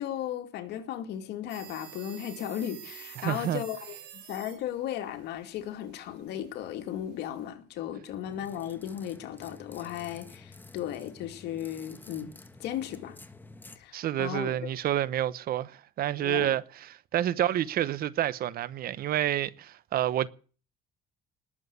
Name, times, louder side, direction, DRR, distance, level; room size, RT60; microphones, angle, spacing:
voice 1, 0.0-12.3 12.6-13.2 13.8-14.7 16.2-16.5, left 11 dB, 80° left, 2.4 m, -36 dB
sound 1, 1.5-7.5, right 11 dB, 85° right, 7.8 m, -50 dB
voice 2, 3.2-3.6 13.9-20.3, right 12 dB, 60° right, 1.0 m, -29 dB
sound 2, 8.2-13.8, left 3 dB, 10° left, 1.6 m, -50 dB
19.5 x 7.6 x 9.5 m
cardioid pair, 110°, 17 cm